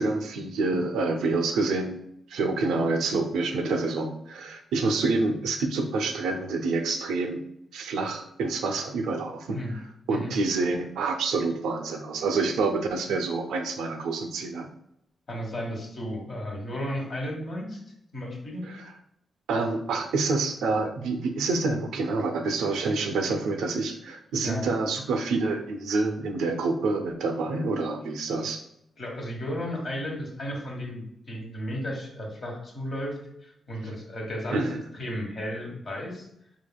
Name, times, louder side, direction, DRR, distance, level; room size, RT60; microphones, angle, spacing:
voice 1, 0.0-2.0 2.3-7.4 7.7-9.6 10.1-14.7 18.7-18.8 19.5-28.6 34.5-34.8, right 3 dB, 80° right, 5 dB, 0.5 m, -27 dB
voice 2, 15.3-17.8 18.1-18.7 24.3-24.7 28.4-28.5 29.0-34.7 34.9-36.3, equal, 60° left, -1 dB, 1.3 m, -34 dB
4.4 x 3.5 x 2.2 m, 0.75 s
supercardioid pair, 45°, 0 cm